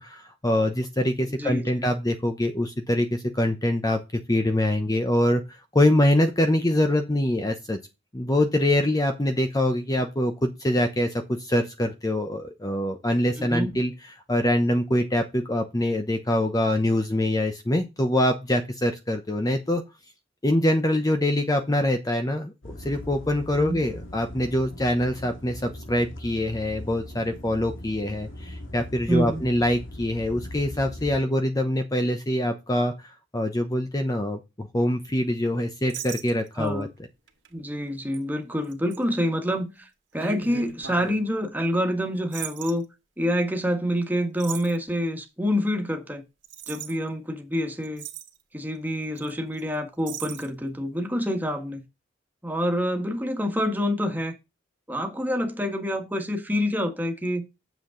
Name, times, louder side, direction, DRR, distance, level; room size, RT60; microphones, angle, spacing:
voice 1, 0.0-7.8 8.1-13.9 14.3-19.8 20.4-36.9, left 1 dB, 20° left, 0.8 m, -24 dB
voice 2, 1.4-1.7 13.4-13.8 23.6-23.8 29.1-29.4 36.6-36.9 37.5-39.9 40.1-42.8 43.2-46.2 46.7-48.0 48.5-51.8 52.4-54.3 54.9-57.4, equal, 10° right, 1.7 m, -27 dB
sound 1, 22.6-31.2, left 1 dB, 80° left, 2.4 m, -40 dB
sound 2, 35.9-36.7 37.3-37.5 38.1-38.2 38.7-39.0 40.2-41.2 42.3-42.7 44.4-44.8 46.4-46.9 47.5-47.6 47.8-48.4 49.2-49.3 49.6-49.7 50.1-50.5, right 7 dB, 70° right, 2.0 m, -37 dB
9.2 x 7.4 x 3.8 m
head